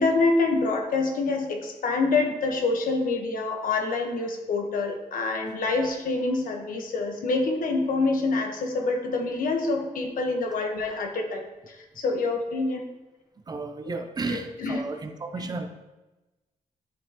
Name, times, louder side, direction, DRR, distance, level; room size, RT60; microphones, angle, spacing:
voice 1, 0.0-12.8 13.9-14.0 14.3-14.8, left 3 dB, 90° left, 3 dB, 1.3 m, -26 dB
voice 2, 13.5-15.7, right 3 dB, 30° right, 6 dB, 0.6 m, -33 dB
11.0 x 5.4 x 3.0 m, 1.1 s
wide cardioid pair, 175°, 14 cm